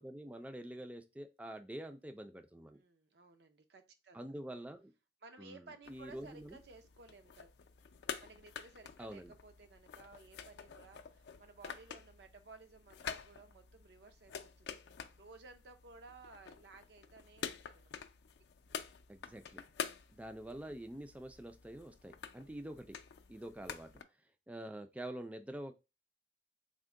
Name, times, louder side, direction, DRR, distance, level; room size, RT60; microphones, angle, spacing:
voice 1, 0.0-2.8 4.1-4.9 5.4-6.6 9.0-9.3 19.1-19.6 20.1-23.0 23.3-23.9 24.5-25.7, right 1 dB, 10° right, 7 dB, 0.3 m, -46 dB
voice 2, 2.7-4.2 5.2-7.5 8.2-14.8 15.2-17.9, right 3 dB, 65° right, 8 dB, 0.6 m, -57 dB
sound 1, 5.8-24.0, left 7 dB, 70° left, 0.4 m, -48 dB
3.6 x 2.1 x 3.6 m, 0.27 s
head